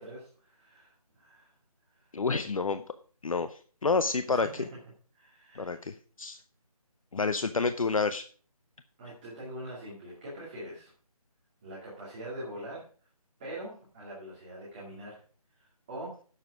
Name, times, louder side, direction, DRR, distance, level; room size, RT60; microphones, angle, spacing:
voice 1, 0.0-1.5 1.9-2.2 4.3-4.7 5.1-5.8 7.6-7.7 9.0-10.9 11.6-12.9 13.4-15.2 15.6-16.2, right 1 dB, 15° right, -7 dB, 2.4 m, -43 dB
voice 2, 2.1-2.8 3.2-4.5 5.5-6.4 7.1-8.2, left 4 dB, 60° left, 11 dB, 0.7 m, -29 dB
11.0 x 7.5 x 5.0 m, 0.42 s
figure-of-eight pair, 175°, 20 cm